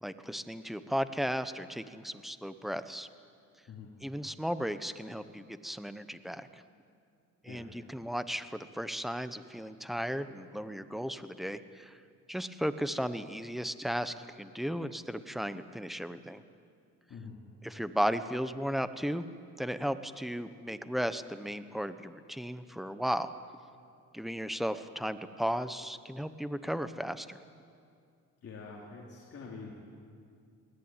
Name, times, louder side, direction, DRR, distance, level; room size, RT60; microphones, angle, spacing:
voice 1, 0.0-3.1 4.0-6.5 7.4-12.0 12.3-16.4 17.6-19.2 19.6-23.3 24.1-27.4, equal, ahead, 11 dB, 1.0 m, -35 dB
voice 2, 28.4-29.8, left 4 dB, 50° left, -4 dB, 3.5 m, -46 dB
22.0 x 17.5 x 9.1 m, 2.3 s
cardioid pair, 90°, 30 cm